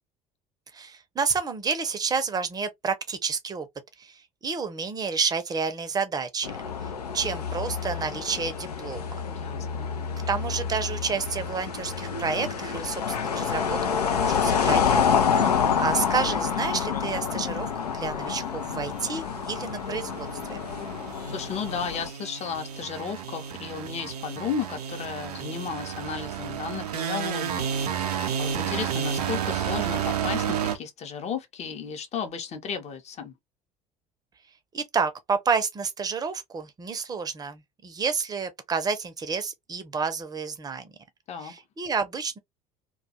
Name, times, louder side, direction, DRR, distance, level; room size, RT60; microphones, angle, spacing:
voice 1, 0.7-3.7 4.0-6.5 7.1-9.1 10.3-15.1 15.3-15.4 15.8-20.6 34.7-40.9 41.4-42.4, right 5 dB, 20° right, 0.6 m, -30 dB
sound 1, 6.4-22.1, left 7 dB, 85° left, 0.5 m, -28 dB
voice 2, 9.3-9.9 15.4-15.8 21.3-27.7 28.4-33.3 41.3-41.5, left 6 dB, 35° left, 0.7 m, -34 dB
sound 2, 18.4-30.8, right 8 dB, 80° right, 0.5 m, -32 dB
2.2 x 2.2 x 2.7 m
figure-of-eight pair, 65°, 20 cm